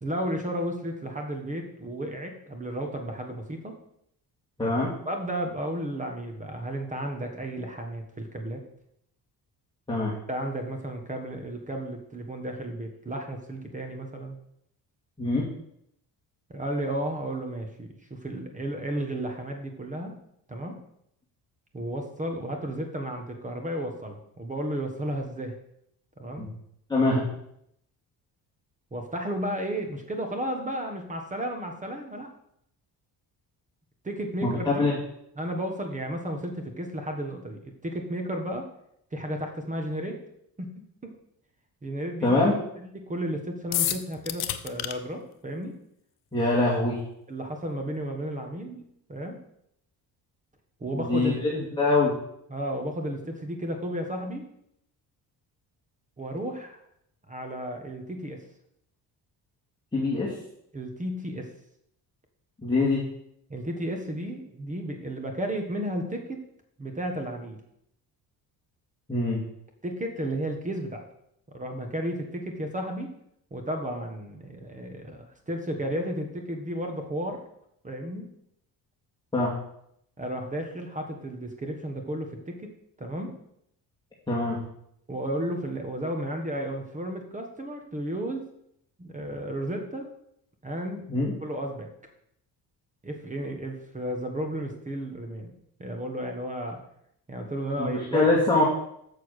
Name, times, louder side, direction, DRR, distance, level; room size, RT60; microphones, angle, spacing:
voice 1, 0.0-3.7 5.0-8.6 10.3-14.4 16.5-20.1 20.5-20.8 21.7-25.5 26.2-26.5 28.9-32.3 34.0-34.9 35.4-38.7 39.1-40.2 40.6-40.7 41.0-41.1 41.8-42.4 42.8-45.8 47.3-49.4 50.8-51.4 52.5-54.5 56.2-56.8 57.3-58.4 60.7-61.5 63.5-66.4 66.8-67.6 69.8-71.0 71.5-73.1 73.5-77.4 77.8-78.3 80.2-82.7 83.0-83.3 85.1-88.4 89.0-90.1 90.6-91.1 91.4-91.9 93.0-95.5 95.8-96.8 97.3-98.3, right 1 dB, 20° right, 4 dB, 1.3 m, -33 dB
voice 2, 4.6-4.9 9.9-10.1 15.2-15.4 26.4-26.5 26.9-27.2 34.4-34.9 42.2-42.5 46.3-47.0 51.0-52.1 59.9-60.3 62.6-63.0 69.1-69.4 79.3-79.5 84.3-84.6 91.1-91.3 97.8-98.6, left 2 dB, 10° left, -7 dB, 2.3 m, -24 dB
Coca Cola Soda Can Opening, 43.7-44.9, left 12 dB, 70° left, 0.8 m, -28 dB
7.0 x 6.9 x 6.5 m, 0.74 s
cardioid pair, 130°, 39 cm